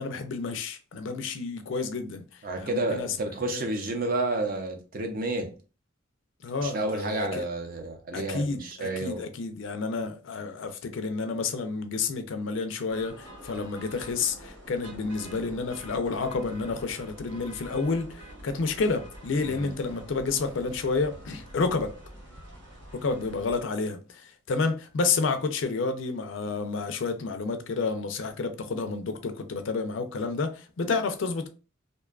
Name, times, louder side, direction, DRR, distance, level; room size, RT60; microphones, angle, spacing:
voice 1, 0.0-3.1 3.5-3.6 6.4-7.5 8.1-21.9 22.9-31.5, left 4 dB, 75° left, 0.4 m, -30 dB
voice 2, 2.4-5.5 6.6-9.3 19.4-19.7, right 2 dB, 45° right, 0.5 m, -30 dB
sound 1, 12.9-23.6, right 1 dB, 75° right, 0.9 m, -46 dB
2.6 x 2.2 x 2.3 m
head